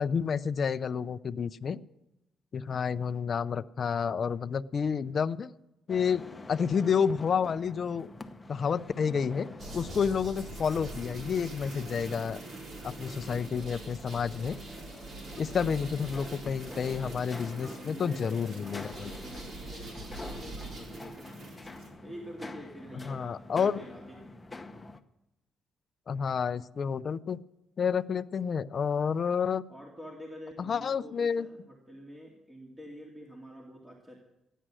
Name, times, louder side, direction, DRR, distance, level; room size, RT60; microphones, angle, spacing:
voice 1, 0.0-1.8 2.5-5.5 5.9-6.2 6.5-8.1 8.5-9.5 9.7-12.4 12.8-14.6 15.4-19.1 23.1-23.8 26.1-27.4 27.8-29.6 30.6-31.5, left 6 dB, 50° left, 12 dB, 0.5 m, -30 dB
sound 1, 5.9-25.0, left 2 dB, 15° left, 0.9 m, -47 dB
sound 2, 9.6-21.9, right 2 dB, 60° right, 4.2 m, -43 dB
voice 2, 15.3-15.7 17.5-21.4 22.0-24.3 29.7-34.2, equal, 20° right, -1 dB, 2.6 m, -47 dB
15.0 x 10.0 x 6.3 m, 0.91 s
cardioid pair, 90°, 0 cm